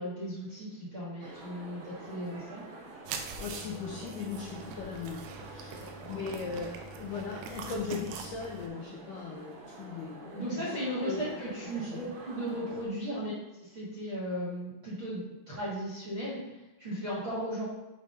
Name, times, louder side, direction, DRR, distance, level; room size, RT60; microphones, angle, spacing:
voice 1, 0.0-2.6 5.7-6.1 10.3-13.3 13.7-16.4 16.8-17.6, equal, 45° right, -8 dB, 1.6 m, -36 dB
sound 1, 1.2-12.9, right 2 dB, 65° right, 2.6 m, -48 dB
sound 2, 3.1-8.7, right 5 dB, 85° right, 2.7 m, -43 dB
voice 2, 3.4-12.0 13.1-13.3, left 5 dB, 80° left, -2 dB, 1.9 m, -39 dB
7.4 x 3.2 x 5.6 m, 1.0 s
omnidirectional pair, 4.8 m